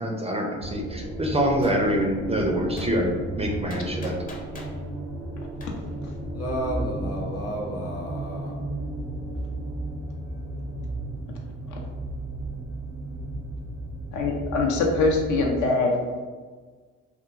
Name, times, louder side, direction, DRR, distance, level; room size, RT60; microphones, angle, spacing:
voice 1, 0.0-4.1, equal, 20° right, 0 dB, 0.4 m, -25 dB
sound 1, 0.6-15.7, right 1 dB, 85° right, 0.7 m, -34 dB
Gunshot gunfire, 1.6-1.8 2.8-2.9 3.7-4.8 5.6-5.7, left 2 dB, 25° left, 0.6 m, -41 dB
voice 2, 6.3-8.5, equal, 55° left, -2 dB, 0.9 m, -31 dB
voice 3, 14.1-15.9, left 3 dB, 80° left, 0 dB, 0.5 m, -23 dB
3.0 x 2.2 x 2.4 m, 1.5 s
cardioid pair, 90°, 30 cm